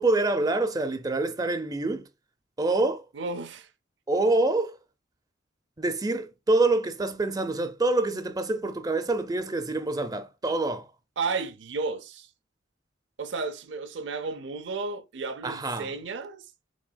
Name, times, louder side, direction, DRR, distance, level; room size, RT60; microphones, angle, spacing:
voice 1, 0.0-2.1 2.6-3.1 4.1-4.8 5.8-10.9 15.4-15.9, right 2 dB, 20° right, 0.5 m, -26 dB
voice 2, 3.1-3.7 11.2-12.3 13.2-16.5, right 4 dB, 75° right, 0.5 m, -33 dB
6.1 x 3.7 x 2.2 m
head